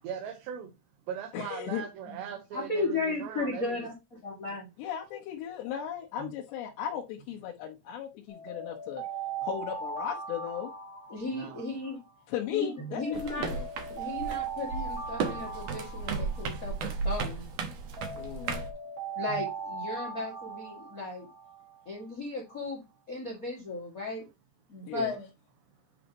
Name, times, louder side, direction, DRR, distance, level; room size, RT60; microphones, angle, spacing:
voice 1, 0.0-0.7 1.1-3.8 11.3-11.6, right 8 dB, 90° right, 3.3 m, -39 dB
voice 2, 1.3-1.8 4.8-9.0 9.4-10.7 12.3-13.7 18.1-18.6 24.8-25.1, left 10 dB, 85° left, 3.2 m, -36 dB
voice 3, 2.5-4.7 6.2-6.3 11.1-12.0 12.5-13.5 13.9-17.5 19.1-21.3 21.8-22.8 23.1-24.3 24.7-25.3, left 3 dB, 35° left, 1.3 m, -35 dB
Alarm, 8.3-12.4 13.0-17.4 18.0-21.8, right 5 dB, 50° right, 1.0 m, -39 dB
sound 1, 13.1-18.7, right 5 dB, 70° right, 1.6 m, -35 dB
9.2 x 5.3 x 2.9 m
omnidirectional pair, 4.8 m